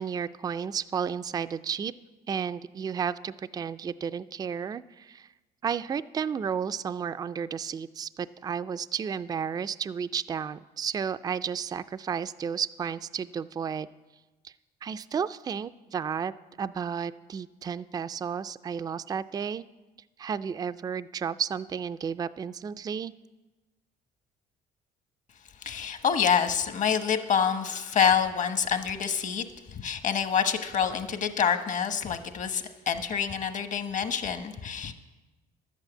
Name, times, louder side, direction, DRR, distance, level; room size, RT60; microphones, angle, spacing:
voice 1, 0.0-1.9 2.3-5.3 5.6-13.9 14.4-14.5 14.8-16.3 16.6-19.6 20.2-23.1, right 7 dB, 25° right, 14 dB, 0.3 m, -32 dB
voice 2, 25.6-34.9, left 7 dB, 50° left, 9 dB, 1.1 m, -27 dB
11.5 x 8.2 x 7.9 m, 1.2 s
cardioid pair, 110°, 17 cm